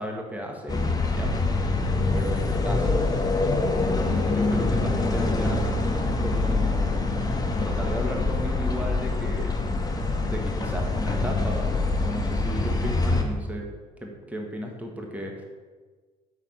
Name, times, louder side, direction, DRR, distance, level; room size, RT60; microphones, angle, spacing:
voice 1, 0.0-1.5 2.1-3.1 3.9-5.7 6.2-7.1 7.6-9.6 10.2-13.7 14.0-15.4, equal, 10° right, 1 dB, 1.6 m, -34 dB
sound 1, 0.7-13.2, left 3 dB, 20° left, 1.4 m, -25 dB
6.0 x 5.7 x 7.1 m, 1.4 s
hypercardioid pair, 65°, 17 cm